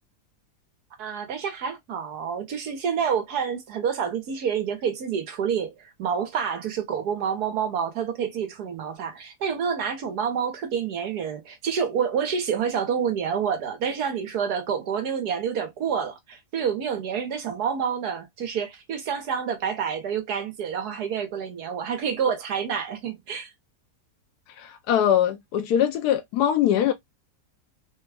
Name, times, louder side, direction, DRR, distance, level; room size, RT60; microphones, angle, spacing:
voice 1, 1.0-23.5, right 7 dB, 70° right, 1.6 m, -28 dB
voice 2, 24.6-26.9, left 10 dB, 75° left, 1.1 m, -22 dB
4.0 x 2.3 x 3.3 m
omnidirectional pair, 1.8 m